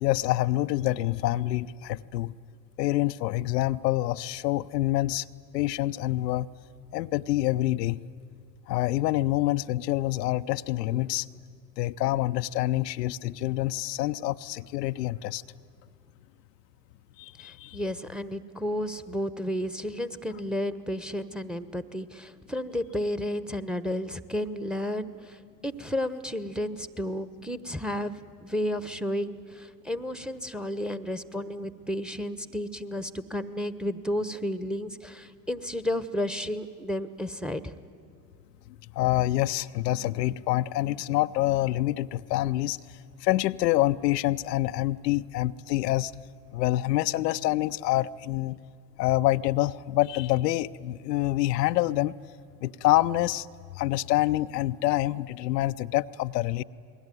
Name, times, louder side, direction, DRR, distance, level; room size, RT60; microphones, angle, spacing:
voice 1, 0.0-2.3 2.8-5.2 5.5-6.5 6.9-8.0 8.7-11.3 11.8-15.4 17.2-17.8 39.0-42.8 43.2-46.1 46.5-48.6 49.0-52.1 52.6-53.5 53.8-56.6, left 16 dB, 80° left, 11 dB, 0.6 m, -26 dB
voice 2, 17.4-25.4 25.6-37.8, left 1 dB, ahead, 13 dB, 1.1 m, -32 dB
28.5 x 20.5 x 9.3 m, 2.2 s
hypercardioid pair, 70°, 48 cm